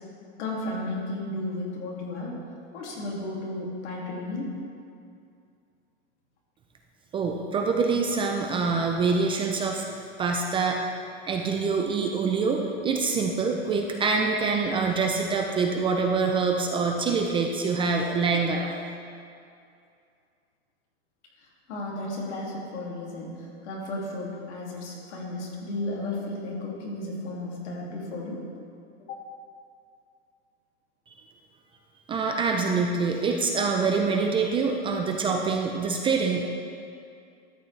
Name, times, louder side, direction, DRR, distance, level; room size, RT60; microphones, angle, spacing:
voice 1, 0.4-2.3 2.7-4.5 21.4-28.4 29.1-29.2, left 2 dB, 85° left, -3 dB, 2.4 m, -34 dB
voice 2, 7.1-9.8 10.2-11.0 11.2-18.7 32.1-36.5, right 4 dB, 15° right, 2 dB, 0.3 m, -25 dB
12.5 x 7.0 x 3.2 m, 2.4 s
supercardioid pair, 135°, 34 cm